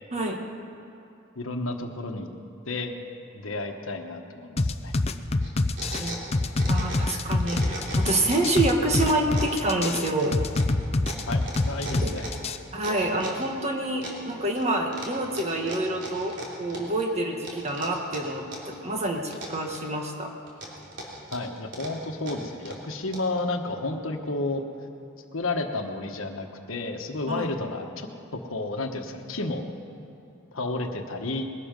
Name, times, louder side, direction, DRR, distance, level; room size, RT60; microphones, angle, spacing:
voice 1, 1.3-2.3 2.7-2.9 3.3-4.9 11.3-12.3 21.3-24.6 25.3-29.7 30.5-31.5, left 2 dB, 70° left, 5 dB, 1.3 m, -31 dB
sound 1, 4.6-12.6, left 2 dB, 30° left, 0.6 m, -25 dB
sound 2, 5.4-7.1 7.4-8.6 9.0-13.5 14.0-14.6 14.9-17.0 17.4-18.8 19.0-20.0 20.5-23.4, right 1 dB, 60° right, 3.3 m, -38 dB
voice 2, 6.7-10.4 11.9-12.1 12.7-20.3 27.3-27.5, right 1 dB, 30° right, 2 dB, 1.6 m, -27 dB
21.0 x 12.5 x 5.3 m, 2.8 s
head